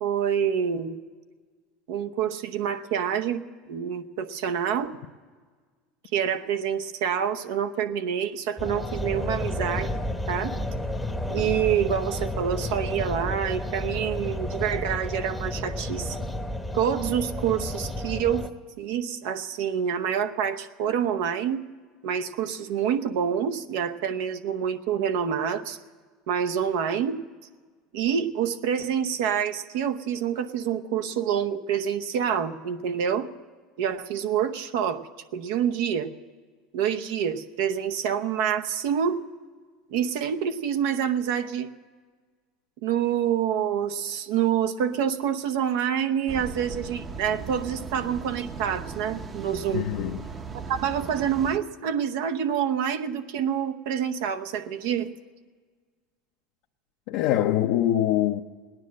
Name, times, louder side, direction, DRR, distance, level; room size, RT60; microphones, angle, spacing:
voice 1, 0.0-1.0 1.9-4.9 6.1-10.0 10.3-10.6 11.3-16.2 16.7-18.5 18.8-21.6 22.0-25.8 26.3-27.2 27.9-33.3 33.8-35.0 35.3-36.1 36.7-39.2 39.9-41.7 42.8-49.9 50.7-55.1, right 8 dB, 75° right, 0.8 m, -27 dB
sound 1, 8.6-18.5, left 1 dB, 5° left, 0.8 m, -31 dB
sound 2, 46.3-51.6, right 5 dB, 25° right, 0.7 m, -38 dB
voice 2, 49.7-50.2 57.1-58.4, left 12 dB, 70° left, 0.6 m, -24 dB
17.5 x 10.0 x 7.4 m
supercardioid pair, 125°, 0 cm